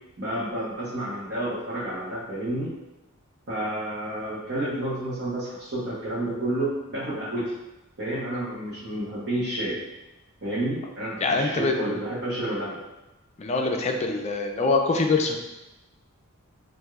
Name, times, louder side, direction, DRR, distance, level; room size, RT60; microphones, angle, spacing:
voice 1, 0.2-2.7 3.5-7.5 8.0-9.8 10.4-12.8, right 1 dB, 50° right, -10 dB, 1.1 m, -30 dB
voice 2, 11.2-12.0 13.4-15.4, left 3 dB, 30° left, 3 dB, 0.5 m, -24 dB
6.1 x 2.6 x 2.4 m, 1.0 s
head